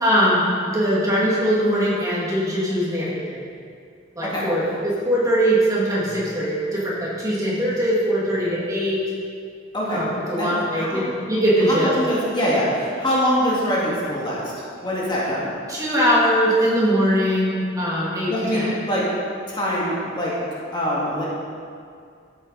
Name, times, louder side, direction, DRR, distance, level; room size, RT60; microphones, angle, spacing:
voice 1, 0.0-3.4 4.2-9.0 9.9-11.9 15.7-18.7, equal, 20° right, -6 dB, 2.2 m, -21 dB
voice 2, 10.4-11.0 11.7-14.5 14.8-15.5 18.3-19.0 19.5-20.3 20.7-21.2, equal, 25° left, -7 dB, 2.2 m, -24 dB
13.5 x 7.7 x 4.1 m, 2.4 s
head